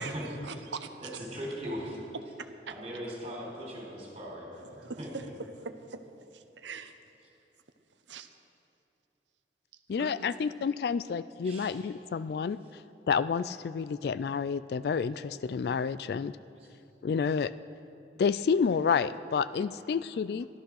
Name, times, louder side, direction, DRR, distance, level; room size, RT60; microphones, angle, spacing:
voice 1, 0.0-0.9 2.4-2.7 4.7-6.0 6.3-6.9 8.1-8.3 10.0-10.3, right 4 dB, 90° right, 9 dB, 0.9 m, -42 dB
voice 2, 1.0-2.0 2.7-5.3 11.4-11.7, equal, 35° right, -3 dB, 4.0 m, -39 dB
voice 3, 9.9-12.8 13.1-16.4 17.0-17.5 18.2-20.5, left 6 dB, 60° left, 15 dB, 0.3 m, -29 dB
14.5 x 13.0 x 6.4 m, 2.9 s
head